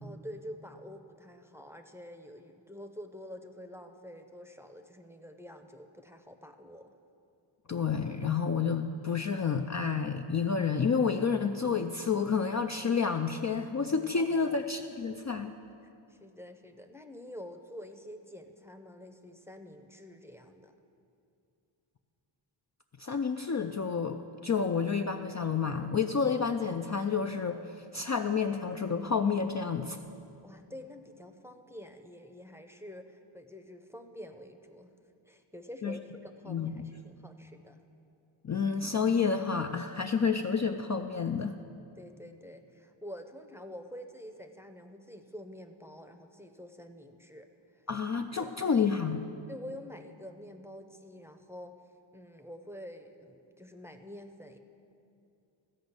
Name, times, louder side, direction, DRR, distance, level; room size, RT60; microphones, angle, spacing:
voice 1, 0.0-6.9 14.2-14.6 15.8-20.7 30.4-34.9 35.3-37.8 42.0-47.5 47.7-47.9 48.4-48.5 49.5-51.7 52.1-54.6, equal, 5° right, 5 dB, 0.7 m, -47 dB
voice 2, 7.7-15.5 23.0-30.0 35.8-35.9 36.5-36.8 38.4-41.6 47.9-49.2, left 5 dB, 35° left, 5 dB, 0.4 m, -29 dB
13.5 x 5.2 x 8.0 m, 2.5 s
wide cardioid pair, 50°, 49 cm